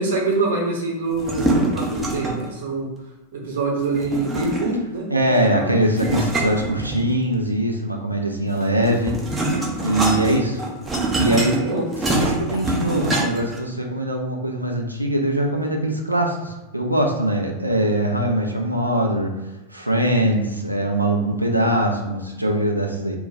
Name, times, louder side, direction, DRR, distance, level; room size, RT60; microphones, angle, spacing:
voice 1, 0.0-2.9 3.3-5.7 11.6-11.9, right 3 dB, 60° right, -2 dB, 0.8 m, -25 dB
sound 1, 1.1-2.5 3.9-4.9 6.0-7.3 8.5-13.6, right 2 dB, 15° right, 0.5 m, -24 dB
voice 2, 5.1-9.2 9.8-10.6 11.2-11.6 12.2-19.4 19.7-23.2, right 1 dB, 85° right, 1 dB, 0.4 m, -22 dB
2.2 x 2.2 x 3.8 m, 1.1 s
figure-of-eight pair, 90°, 0 cm